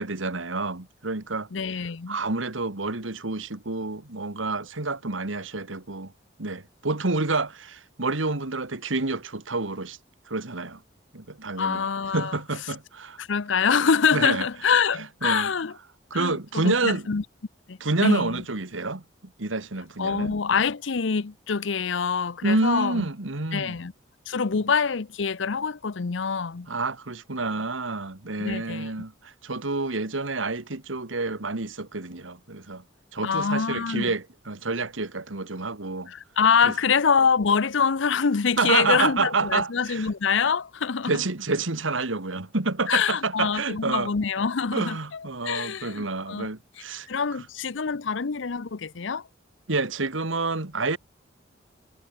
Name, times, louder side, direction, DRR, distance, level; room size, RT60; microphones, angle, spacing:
voice 1, 0.0-1.5 2.1-6.1 6.4-10.0 10.3-10.8 11.1-11.9 12.1-13.2 14.1-14.5 14.9-15.5 16.1-17.1 17.8-19.0 19.4-20.4 22.4-23.8 24.5-24.6 26.7-32.8 33.1-36.1 36.6-36.7 38.6-40.1 41.1-44.1 44.7-47.5 49.7-51.0, right 3 dB, 85° right, 1.9 m, -28 dB
voice 2, 1.5-2.2 11.6-12.3 13.2-15.7 16.1-17.2 17.7-18.4 20.0-23.0 23.5-23.9 24.3-26.7 28.4-28.9 33.2-34.1 36.1-41.1 42.9-45.0 45.4-46.5 47.1-49.2, left 6 dB, 75° left, 0.7 m, -25 dB
head